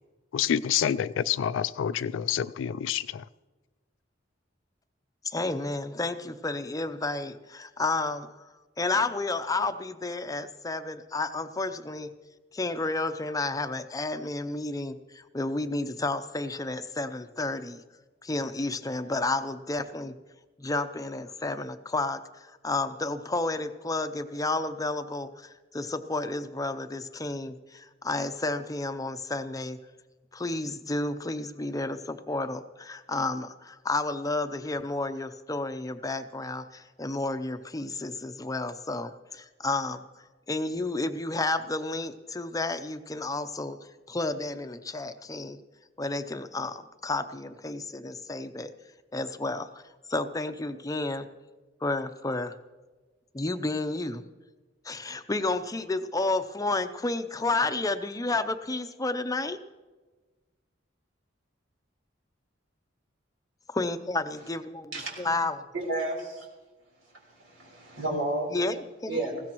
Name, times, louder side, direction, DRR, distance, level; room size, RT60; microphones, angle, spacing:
voice 1, 0.3-3.3, left 9 dB, 80° left, 14 dB, 0.3 m, -28 dB
voice 2, 5.2-8.5 8.8-12.1 12.5-17.8 18.2-20.2 20.6-29.8 30.3-40.0 40.5-43.8 44.1-45.6 46.0-48.7 49.1-49.8 50.1-51.3 51.8-52.6 53.3-54.2 54.8-59.6 63.7-65.6 68.5-69.4, left 2 dB, 20° left, 9 dB, 0.6 m, -31 dB
voice 3, 64.9-65.3 65.7-66.5 67.3-68.5 69.1-69.4, right 2 dB, 85° right, -2 dB, 3.8 m, -32 dB
19.5 x 16.0 x 3.0 m, 1.3 s
head